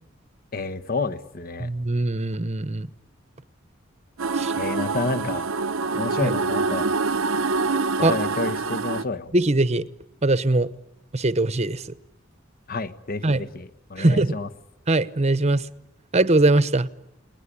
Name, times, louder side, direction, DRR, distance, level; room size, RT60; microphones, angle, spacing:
voice 1, 0.5-1.7 4.5-5.4 5.9-6.9 8.0-9.3 12.7-14.5, left 3 dB, 45° left, 12 dB, 1.2 m, -29 dB
voice 2, 1.6-2.9 4.4-4.5 6.2-6.3 8.0-8.1 9.3-9.8 10.2-10.7 11.1-11.8 13.2-13.4 14.0-14.4 14.9-15.6 16.1-16.9, right 2 dB, 30° right, 15 dB, 0.9 m, -21 dB
sound 1, 4.2-9.0, right 4 dB, 85° right, 1.0 m, -25 dB
28.5 x 20.0 x 10.0 m, 0.89 s
head